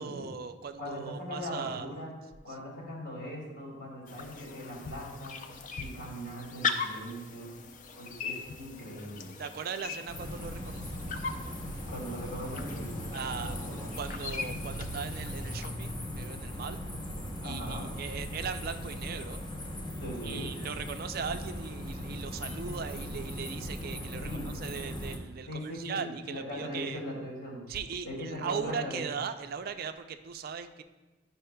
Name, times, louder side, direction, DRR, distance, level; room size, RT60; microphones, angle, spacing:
voice 1, 0.0-1.9 9.4-10.9 13.1-13.6 14.0-16.8 17.4-19.4 20.2-27.0 27.7-30.8, right 6 dB, 50° right, 9 dB, 0.4 m, -38 dB
voice 2, 0.8-2.1 2.4-5.4 5.8-7.5 7.9-9.3 11.8-13.0 13.3-13.9 17.4-17.9 20.0-20.5 24.2-24.5 25.5-27.6 28.0-29.1, equal, 75° left, -3 dB, 2.4 m, -40 dB
sound 1, 4.1-15.7, left 5 dB, 40° left, 0.4 m, -40 dB
sound 2, 10.1-25.2, equal, 20° left, 0.7 m, -39 dB
10.5 x 5.5 x 2.2 m, 1.1 s
head